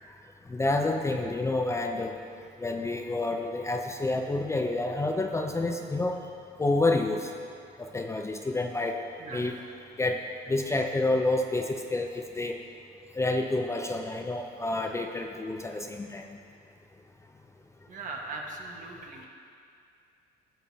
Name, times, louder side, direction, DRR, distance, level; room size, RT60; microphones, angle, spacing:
voice 1, 0.5-2.1 2.6-6.2 6.6-7.3 7.8-9.0 9.3-9.6 10.0-10.2 10.5-12.6 13.2-16.2, left 2 dB, 15° left, 3 dB, 0.5 m, -28 dB
voice 2, 9.2-9.5 17.9-19.3, right 3 dB, 50° right, 0 dB, 1.4 m, -39 dB
16.0 x 7.1 x 2.8 m, 2.4 s
cardioid pair, 110°, 17 cm